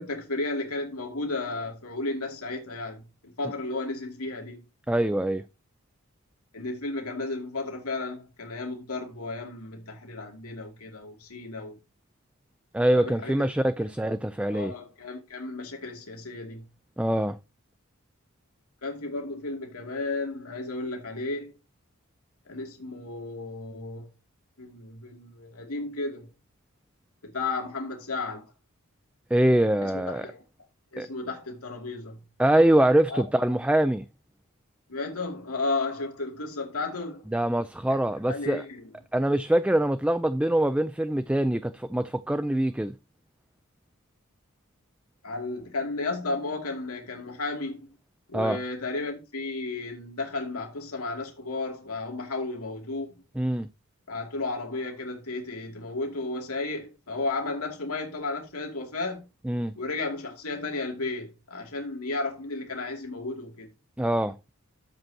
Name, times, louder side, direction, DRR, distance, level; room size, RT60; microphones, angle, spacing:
voice 1, 0.0-4.6 6.5-11.8 12.9-13.3 14.4-16.6 18.8-21.5 22.5-24.1 24.6-26.3 27.3-28.4 29.8-30.4 30.9-32.2 33.1-33.2 34.9-37.3 37.9-38.0 38.3-38.8 45.2-47.9 48.3-53.2 54.1-59.3 59.8-63.7, left 3 dB, 85° left, 2.5 m, -33 dB
voice 2, 4.9-5.4 12.7-14.7 17.0-17.4 29.3-30.3 31.0-31.1 32.4-34.0 37.3-38.6 39.1-42.9 48.3-48.6 53.4-53.7 59.4-59.7 64.0-64.4, right 1 dB, 5° right, 0.4 m, -24 dB
12.0 x 7.9 x 2.8 m
head